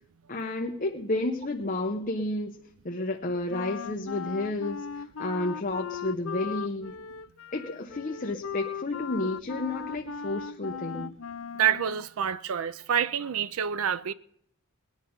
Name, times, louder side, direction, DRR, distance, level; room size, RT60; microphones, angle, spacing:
voice 1, 0.3-2.6 2.8-7.0 7.5-11.1, left 2 dB, 40° left, 0.9 m, -31 dB
Wind instrument woodwind instrument, 3.5-12.1, left 6 dB, 65° left, 0.5 m, -38 dB
voice 2, 11.6-14.1, right 8 dB, 75° right, 0.5 m, -27 dB
20.0 x 9.8 x 5.4 m
head